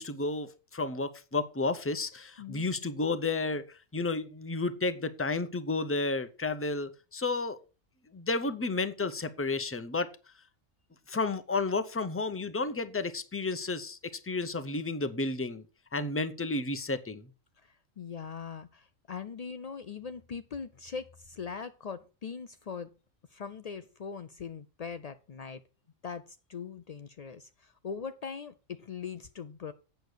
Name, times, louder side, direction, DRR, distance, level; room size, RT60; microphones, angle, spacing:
voice 1, 0.0-7.6 8.1-10.1 11.1-14.0 14.2-15.6 15.9-17.3, left 3 dB, 15° left, 0.5 m, -32 dB
voice 2, 18.0-22.9 23.3-25.6 26.0-29.7, left 6 dB, 80° left, 0.3 m, -41 dB
8.4 x 6.7 x 6.2 m
omnidirectional pair, 1.4 m